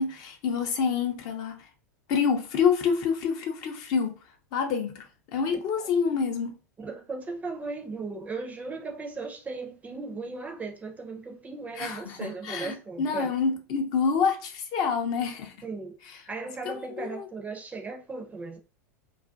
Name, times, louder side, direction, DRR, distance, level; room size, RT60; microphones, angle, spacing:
voice 1, 0.0-1.6 2.1-4.2 4.5-5.1 5.3-6.5 11.8-15.5 16.6-17.3, left 6 dB, 45° left, 0.5 m, -27 dB
voice 2, 6.8-13.3 15.6-16.0 16.3-18.6, right 4 dB, 15° right, 0.5 m, -37 dB
2.4 x 2.2 x 2.4 m
hypercardioid pair, 90°, 9 cm